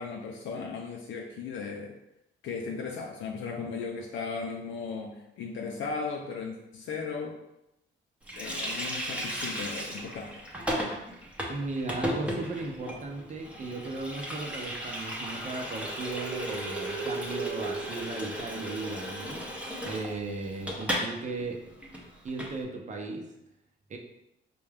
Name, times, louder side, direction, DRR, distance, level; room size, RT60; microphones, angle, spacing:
voice 1, 0.0-2.0 2.4-7.4 8.4-10.3, left 5 dB, 75° left, 0 dB, 0.5 m, -36 dB
Water tap faucet, 8.3-21.1 21.4-21.5 21.8-22.5, right 1 dB, 5° right, 0.8 m, -35 dB
voice 2, 11.5-21.8 22.2-23.3 23.9-24.0, right 3 dB, 35° right, 1 dB, 0.7 m, -36 dB
4.1 x 2.3 x 3.4 m, 0.87 s
cardioid pair, 90°, 20 cm